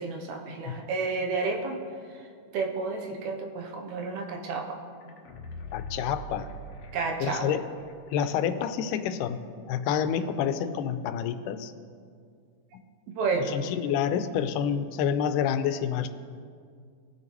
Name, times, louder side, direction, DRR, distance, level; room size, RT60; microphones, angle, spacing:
voice 1, 0.0-1.8 2.1-2.2 2.5-4.8 6.9-7.5 13.1-13.6, right 4 dB, 75° right, 2 dB, 2.0 m, -31 dB
sound 1, 5.0-7.9 8.2-8.3, equal, 65° left, 1.8 m, -42 dB
voice 2, 5.7-6.5 7.2-7.7 8.1-9.4 9.7-11.7 13.5-16.1, left 8 dB, 90° left, 10 dB, 2.2 m, -28 dB
19.5 x 6.5 x 3.0 m, 2.2 s
omnidirectional pair, 3.7 m